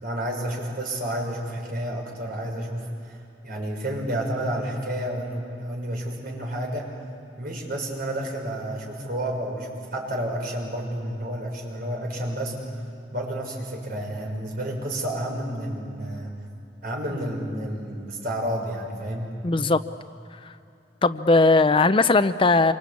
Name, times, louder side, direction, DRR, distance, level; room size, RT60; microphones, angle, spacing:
voice 1, 0.0-3.2 3.4-6.9 7.4-12.6 13.1-16.3 16.8-19.3, right 1 dB, 55° right, 0 dB, 6.1 m, -30 dB
voice 2, 19.4-19.8 21.0-22.7, left 3 dB, 30° left, 11 dB, 0.6 m, -18 dB
27.5 x 25.5 x 8.5 m, 2.7 s
head